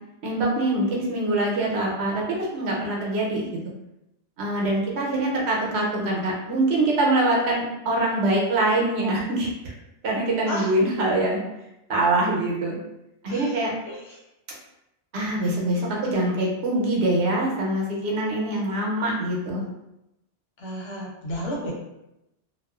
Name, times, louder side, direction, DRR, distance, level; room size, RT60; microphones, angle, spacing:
voice 1, 0.2-3.6 4.4-9.7 10.0-11.4 11.9-12.8 13.2-13.7 15.1-19.6, right 1 dB, 70° right, -3 dB, 0.9 m, -24 dB
voice 2, 13.3-14.2 20.6-21.7, equal, 90° left, -3 dB, 1.1 m, -33 dB
2.4 x 2.3 x 2.3 m, 0.89 s
omnidirectional pair, 1.2 m